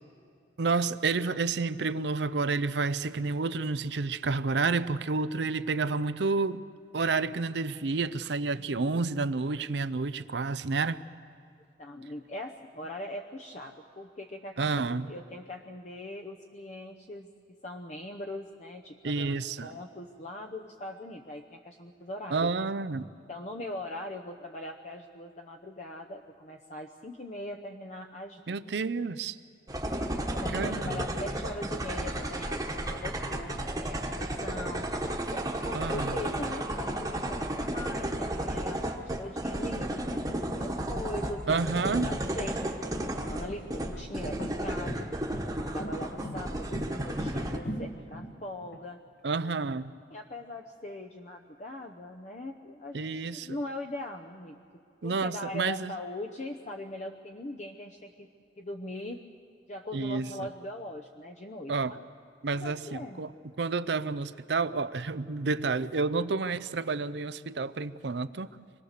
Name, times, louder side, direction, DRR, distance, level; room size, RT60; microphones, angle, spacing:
voice 1, 0.6-6.6 6.9-11.0 14.6-15.1 19.0-19.7 22.3-23.1 28.5-29.4 30.5-31.0 35.7-36.1 41.5-42.1 49.2-49.9 52.9-53.6 55.0-55.9 59.9-60.3 61.7-61.9 62.4-63.3 63.6-68.5, right 4 dB, 70° right, 14 dB, 0.6 m, -30 dB
voice 2, 11.8-17.3 17.6-22.5 23.3-28.4 30.2-34.9 35.3-35.4 35.6-41.6 41.9-45.1 45.6-49.0 50.1-54.6 55.0-58.3 58.6-59.2 59.7-62.0 62.5-63.2, left 1 dB, 40° left, 3 dB, 0.8 m, -41 dB
sound 1, 29.7-47.6, right 1 dB, 20° right, 1.3 m, -33 dB
sound 2, 43.0-48.8, equal, 65° left, 1.9 m, -40 dB
25.5 x 18.5 x 6.6 m, 2.5 s
head